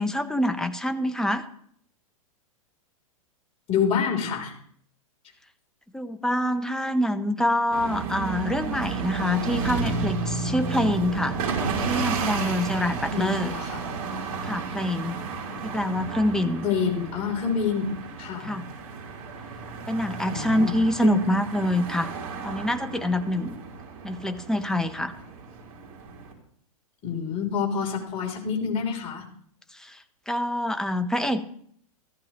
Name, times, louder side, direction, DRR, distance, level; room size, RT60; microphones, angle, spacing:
voice 1, 0.0-1.4 5.9-11.4 11.8-13.5 14.4-15.2 15.6-16.7 18.4-18.7 19.9-22.1 22.4-23.6 24.0-25.1 29.7-31.5, left 1 dB, 5° left, 8 dB, 0.8 m, -26 dB
voice 2, 3.7-4.5 13.1-13.8 16.6-18.6 20.3-20.7 21.0-21.2 27.0-29.2, left 6 dB, 35° left, 0 dB, 3.4 m, -27 dB
sound 1, 7.7-26.3, right 4 dB, 50° right, 3.7 m, -32 dB
14.5 x 14.0 x 3.0 m, 0.62 s
hypercardioid pair, 110°, 18 cm